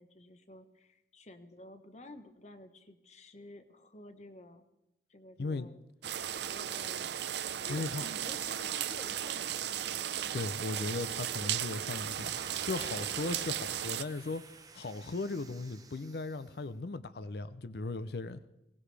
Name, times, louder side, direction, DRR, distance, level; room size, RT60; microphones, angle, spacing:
voice 1, 0.0-4.6 5.1-5.8 6.1-7.2 7.6-10.5, left 1 dB, 40° left, 9 dB, 1.0 m, -52 dB
sound 1, 6.0-14.0, right 10 dB, 70° right, 0.5 m, -36 dB
voice 2, 7.7-8.1 10.3-14.4 14.7-18.4, left 3 dB, 60° left, 13 dB, 0.5 m, -37 dB
sound 2, 11.6-16.5, right 4 dB, 20° right, 0.7 m, -52 dB
22.0 x 18.0 x 3.4 m, 0.92 s
head